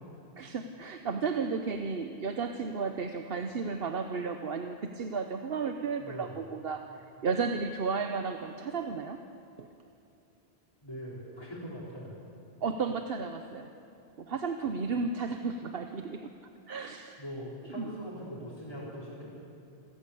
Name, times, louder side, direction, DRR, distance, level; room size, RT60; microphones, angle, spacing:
voice 1, 0.4-6.8 7.2-9.2 9.6-9.7 12.6-13.7 14.2-16.3 16.7-17.2 17.8-17.9, right 5 dB, 65° right, 6 dB, 1.1 m, -33 dB
voice 2, 6.0-6.4 10.8-12.2 17.2-19.3, equal, 25° left, -7 dB, 4.1 m, -41 dB
27.5 x 14.0 x 8.4 m, 2.7 s
omnidirectional pair, 1.0 m